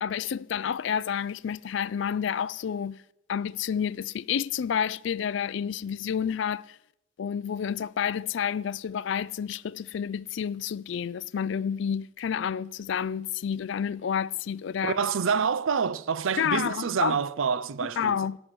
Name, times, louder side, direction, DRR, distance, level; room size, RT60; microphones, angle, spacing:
voice 1, 0.0-3.0 3.3-6.8 7.2-15.0 16.4-17.2 18.0-18.4, left 8 dB, 60° left, 0.3 m, -29 dB
voice 2, 14.8-18.2, right 6 dB, 70° right, 0.5 m, -27 dB
11.0 x 6.1 x 9.0 m
head